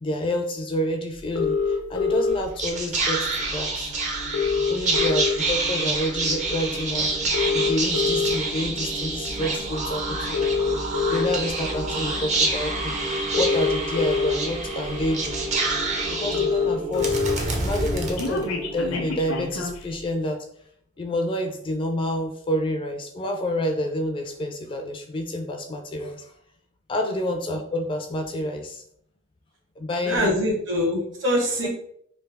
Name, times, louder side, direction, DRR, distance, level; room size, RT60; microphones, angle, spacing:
voice 1, 0.0-3.9 4.7-7.1 7.5-10.5 11.1-12.9 13.3-15.4 16.1-17.2 17.6-20.4 21.0-26.3 26.9-28.8 29.8-30.4, left 1 dB, 25° left, 5 dB, 0.3 m, -28 dB
sound 1, 1.4-2.4 3.5-3.6 3.9-4.0 4.2-5.6 6.1-6.3 7.2-8.3 9.1-9.3 10.2-11.4 12.6-12.7 13.2-14.3 15.0-15.1 15.4-15.5 15.8-15.9 16.0-17.3 17.7-19.8, left 5 dB, 85° left, 0.6 m, -25 dB
Whispering, 2.3-18.9, right 2 dB, 35° right, 0.6 m, -27 dB
voice 2, 30.0-31.7, equal, 65° right, -1 dB, 1.2 m, -24 dB
3.3 x 2.3 x 3.3 m, 0.66 s
head